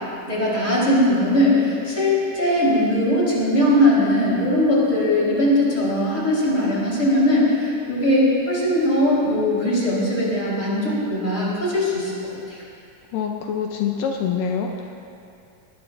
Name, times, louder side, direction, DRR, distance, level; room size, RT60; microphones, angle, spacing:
voice 1, 0.3-12.1 12.5-12.6, left 1 dB, 20° left, -7 dB, 4.5 m, -20 dB
voice 2, 13.1-14.7, left 7 dB, 80° left, 2 dB, 2.4 m, -25 dB
21.5 x 20.0 x 2.7 m, 2.6 s
omnidirectional pair, 3.9 m